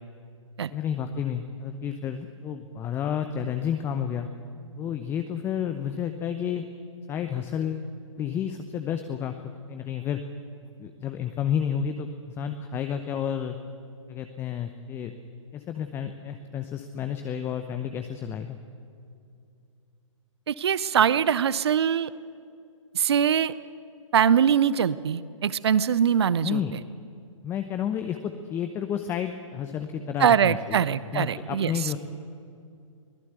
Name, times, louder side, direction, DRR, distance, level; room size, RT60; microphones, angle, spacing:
voice 1, 0.7-4.3 4.8-6.6 7.1-7.9 8.2-10.2 10.8-13.6 14.1-15.1 15.5-18.6 26.4-26.7 27.4-30.9 31.1-32.0, left 8 dB, 15° left, 8 dB, 0.8 m, -31 dB
voice 2, 20.5-22.1 22.9-23.5 24.1-26.8 30.2-31.7, right 8 dB, 55° right, 18 dB, 0.7 m, -22 dB
24.0 x 17.5 x 8.1 m, 2.4 s
figure-of-eight pair, 125°, 17 cm